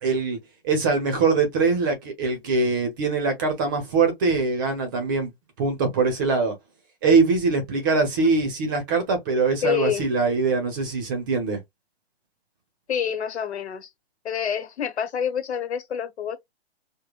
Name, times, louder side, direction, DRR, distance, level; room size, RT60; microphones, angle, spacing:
voice 1, 0.0-0.4 0.6-5.3 5.6-6.5 7.0-11.6, right 4 dB, 20° right, 0.7 m, -22 dB
voice 2, 9.6-10.0 12.9-13.9 14.2-16.4, left 8 dB, 85° left, 1.1 m, -27 dB
4.9 x 2.1 x 2.3 m
hypercardioid pair, 170°, 32 cm